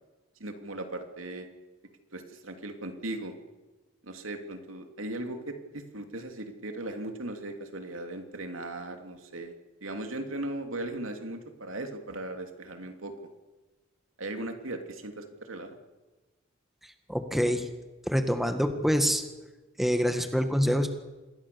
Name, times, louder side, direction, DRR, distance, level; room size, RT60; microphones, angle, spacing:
voice 1, 0.4-1.5 2.1-3.3 4.0-9.5 9.8-13.1 14.2-15.8, right 2 dB, 90° right, 5 dB, 2.9 m, -38 dB
voice 2, 17.1-17.6 18.1-19.2 19.8-20.9, equal, ahead, 7 dB, 1.6 m, -25 dB
27.5 x 21.0 x 7.0 m, 1.2 s
head